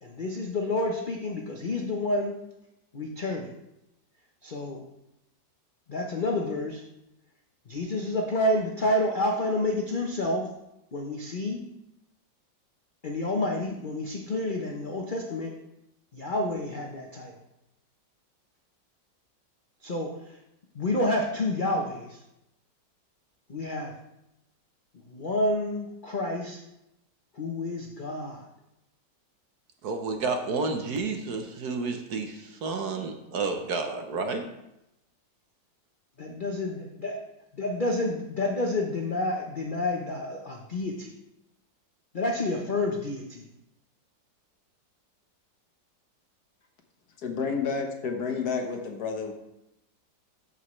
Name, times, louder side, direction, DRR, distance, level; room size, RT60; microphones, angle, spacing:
voice 1, 0.0-2.4 2.9-3.5 4.4-4.8 5.9-6.8 7.7-10.5 10.9-11.6 13.0-15.5 16.1-17.3 19.8-20.1 20.7-22.2 23.5-24.0 25.1-26.6 27.4-28.5 36.2-37.2 37.6-41.1 42.1-43.4, left 1 dB, 40° left, 0 dB, 0.7 m, -29 dB
voice 2, 29.8-34.4, right 4 dB, 65° right, 5 dB, 1.3 m, -30 dB
voice 3, 47.2-49.3, left 5 dB, 60° left, 3 dB, 1.6 m, -30 dB
13.5 x 5.5 x 3.2 m, 0.87 s
omnidirectional pair, 2.0 m